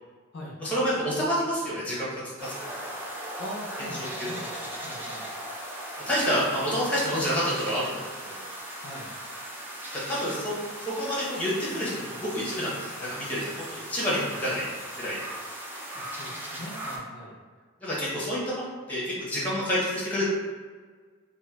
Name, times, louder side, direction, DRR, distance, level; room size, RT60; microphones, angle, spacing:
voice 1, 0.6-2.1 2.4-2.7 3.8-4.4 5.0-5.2 6.1-8.4 10.1-10.5 10.8-14.6 15.0-15.2 16.4-16.6 17.8-20.2, equal, 5° left, -8 dB, 0.8 m, -29 dB
sound 1, 2.4-17.0, right 1 dB, 10° right, 0.3 m, -38 dB
voice 2, 3.4-5.3 8.8-9.1 14.2-14.3 15.9-17.3, left 1 dB, 50° left, -4 dB, 0.5 m, -41 dB
2.6 x 2.1 x 3.8 m, 1.5 s
head